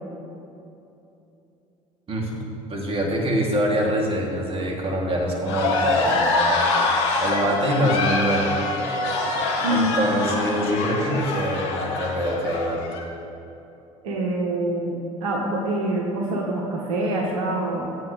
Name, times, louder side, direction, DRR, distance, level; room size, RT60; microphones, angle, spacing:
voice 1, 2.1-2.4 2.7-6.7 7.2-8.6 9.5-12.8, equal, 35° right, -1 dB, 2.9 m, -24 dB
sound 1, 5.5-13.0, left 3 dB, 65° left, 1.9 m, -24 dB
voice 2, 9.6-9.9 14.0-18.0, right 1 dB, 75° right, -1 dB, 1.4 m, -25 dB
21.0 x 8.5 x 3.4 m, 2.8 s
figure-of-eight pair, 60°, 18 cm